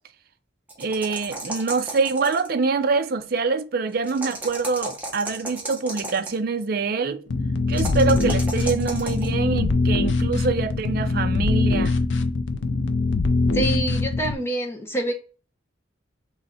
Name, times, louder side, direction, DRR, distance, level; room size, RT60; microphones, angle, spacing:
sound 1, 0.7-2.6 4.0-6.4 7.7-9.3, right 2 dB, 10° right, 1.0 m, -34 dB
voice 1, 0.8-7.2 7.7-12.0, right 4 dB, 50° right, 0.4 m, -25 dB
sound 2, 7.3-14.3, left 3 dB, 65° left, 0.5 m, -22 dB
voice 2, 13.5-15.1, right 1 dB, 10° left, 0.7 m, -26 dB
3.9 x 3.1 x 4.2 m
head